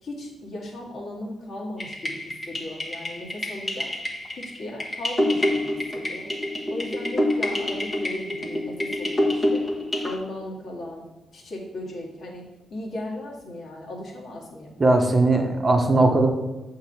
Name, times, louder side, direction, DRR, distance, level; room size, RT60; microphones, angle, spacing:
voice 1, 0.0-3.9 4.6-6.3 6.7-9.7 10.0-11.0 11.3-12.4 12.7-14.8, left 1 dB, 55° left, -2 dB, 2.1 m, -36 dB
sound 1, 1.8-10.1, left 1 dB, 20° left, 1.3 m, -27 dB
voice 2, 14.8-16.3, right 2 dB, 25° right, 3 dB, 1.0 m, -19 dB
8.2 x 3.8 x 5.7 m, 1.1 s
cardioid pair, 125°, 0 cm